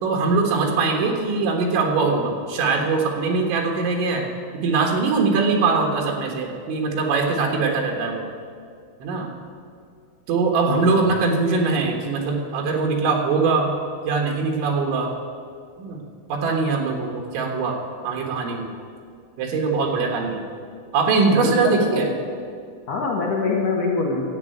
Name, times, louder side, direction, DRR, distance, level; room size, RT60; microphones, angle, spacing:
voice 1, 0.0-4.2 4.6-8.2 9.0-9.3 10.3-13.7 14.1-15.1 15.8-16.0 16.3-18.7 19.4-20.5 20.9-22.1, right 4 dB, 80° right, 1 dB, 3.8 m, -22 dB
voice 2, 10.7-11.0 21.2-22.0 22.9-24.2, left 3 dB, 70° left, -2 dB, 2.0 m, -25 dB
13.0 x 8.2 x 9.2 m, 2.3 s
omnidirectional pair, 5.3 m